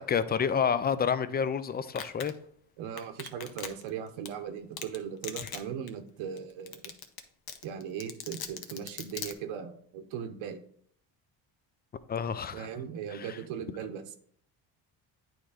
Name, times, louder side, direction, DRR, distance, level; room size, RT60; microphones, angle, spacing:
voice 1, 0.0-2.3 12.1-12.7 13.1-13.4, left 7 dB, 20° left, 14 dB, 0.4 m, -29 dB
Domestic sounds home sounds, 2.0-2.3 3.0-3.9 4.3-4.4 4.8-5.0 5.2-5.6 5.9-6.0 6.4-6.5 6.7-7.2 7.5-9.3, left 8 dB, 50° left, 0.9 m, -38 dB
voice 2, 2.8-6.9 7.6-10.6 12.5-14.2, right 8 dB, 80° right, 8 dB, 0.9 m, -38 dB
8.8 x 3.2 x 4.9 m, 0.63 s
cardioid pair, 85°, 47 cm